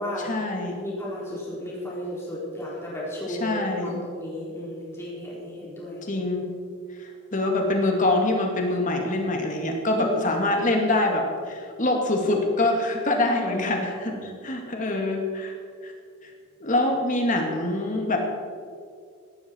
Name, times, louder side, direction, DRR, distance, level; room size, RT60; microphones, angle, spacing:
voice 1, 0.2-0.7 3.3-4.0 6.1-6.5 7.0-15.5 15.8-15.9 16.2-16.3 16.6-18.2, left 2 dB, 40° left, 2 dB, 2.3 m, -25 dB
voice 2, 0.8-6.0 9.9-10.1 13.5-14.2, left 1 dB, 15° left, -6 dB, 4.1 m, -34 dB
17.0 x 13.0 x 4.6 m, 2.2 s
head